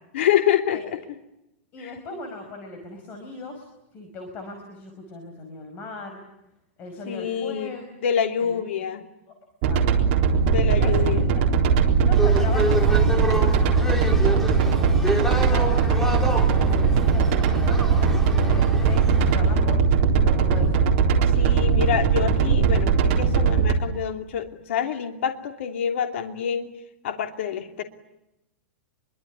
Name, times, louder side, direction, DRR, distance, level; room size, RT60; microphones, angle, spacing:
voice 1, 0.1-0.8 1.8-1.9 7.1-9.0 10.5-11.3 21.4-26.7 27.0-27.8, left 9 dB, 65° left, 5 dB, 3.0 m, -26 dB
voice 2, 1.7-3.7 3.9-6.2 6.8-7.8 8.4-8.5 9.7-10.1 10.8-11.0 11.3-11.4 12.1-16.0 16.5-19.9 20.2-21.0, left 3 dB, 25° left, 5 dB, 5.3 m, -38 dB
sound 1, 9.6-23.7, right 5 dB, 40° right, 3.9 m, -20 dB
sound 2, 12.1-19.4, equal, 5° left, 3.0 m, -29 dB
26.0 x 23.5 x 9.5 m, 0.88 s
supercardioid pair, 170°, 7 cm